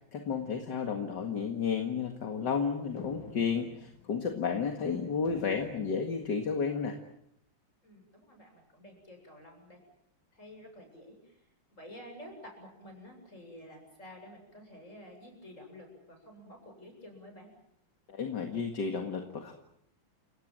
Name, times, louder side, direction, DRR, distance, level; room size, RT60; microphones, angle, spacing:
voice 1, 0.1-7.0 18.1-19.5, left 6 dB, 65° left, 5 dB, 2.5 m, -32 dB
sound 1, 2.0-6.8, left 4 dB, 80° left, 3.4 m, -53 dB
voice 2, 7.8-9.8 10.3-11.4 11.7-17.5, equal, 40° left, 3 dB, 8.3 m, -50 dB
30.0 x 18.0 x 9.0 m, 0.76 s
omnidirectional pair, 2.0 m